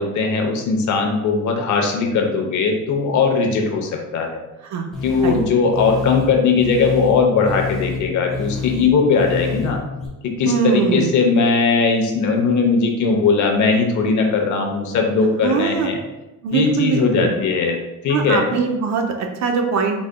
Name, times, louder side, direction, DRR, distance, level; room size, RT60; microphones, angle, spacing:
voice 1, 0.0-4.4 5.0-9.8 10.2-16.0 16.5-17.8 18.0-18.4, left 4 dB, 70° left, 2 dB, 0.8 m, -19 dB
sound 1, 4.9-10.1, left 5 dB, ahead, 1.1 m, -28 dB
voice 2, 10.5-11.1 15.4-15.9 16.4-17.3 18.1-20.0, right 5 dB, 65° right, 4 dB, 0.7 m, -21 dB
4.8 x 4.0 x 2.2 m, 1.0 s
cardioid pair, 150°, 31 cm